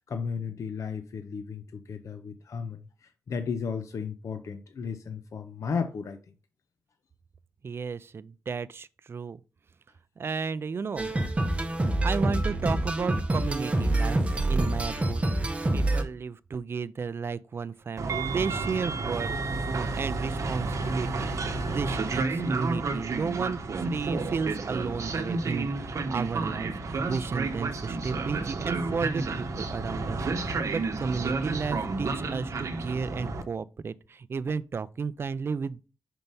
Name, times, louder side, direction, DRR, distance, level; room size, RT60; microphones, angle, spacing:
voice 1, 0.0-6.2, left 5 dB, 60° left, 0.6 m, -34 dB
voice 2, 7.6-9.4 10.2-11.2 12.0-15.3 15.7-19.3 19.6-35.8, right 5 dB, 45° right, 0.4 m, -33 dB
sound 1, 11.0-16.0, right 2 dB, 20° right, 0.8 m, -26 dB
Train, 18.0-33.4, right 3 dB, 60° right, 0.9 m, -31 dB
5.5 x 4.5 x 5.4 m
wide cardioid pair, 140°, 6 cm